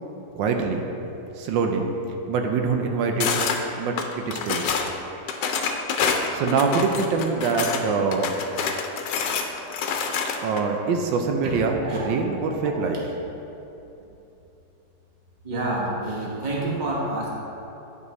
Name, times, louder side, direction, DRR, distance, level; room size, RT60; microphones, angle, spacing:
voice 1, 0.3-0.8 1.4-1.9 2.3-3.3 3.8-4.7 6.3-8.3 10.4-13.0, right 4 dB, 85° right, 3 dB, 1.4 m, -24 dB
sound 1, 3.2-3.6 4.0-4.9 5.3-7.8 8.1-10.6, left 6 dB, 75° left, 1.2 m, -26 dB
voice 2, 15.4-17.3, right 2 dB, 30° right, -4 dB, 1.2 m, -28 dB
10.5 x 5.3 x 3.1 m, 3.0 s
omnidirectional pair, 2.0 m